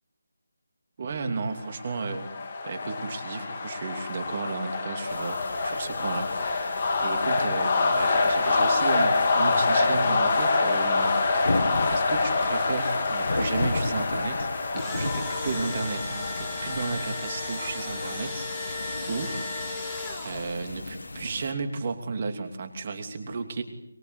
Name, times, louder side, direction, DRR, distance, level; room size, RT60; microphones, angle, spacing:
voice 1, 1.0-2.3 2.6-6.3 7.0-11.6 11.9-14.5 14.7-19.5 20.2-23.6, right 4 dB, 35° right, 6 dB, 3.0 m, -33 dB
sound 1, 1.6-18.3, left 3 dB, 35° left, 3.1 m, -26 dB
sound 2, 5.1-21.5, left 2 dB, 65° left, 2.2 m, -35 dB
Engine / Drill, 14.5-20.7, left 3 dB, 15° left, 4.5 m, -35 dB
24.0 x 22.5 x 8.3 m, 0.84 s
figure-of-eight pair, 160°, 0 cm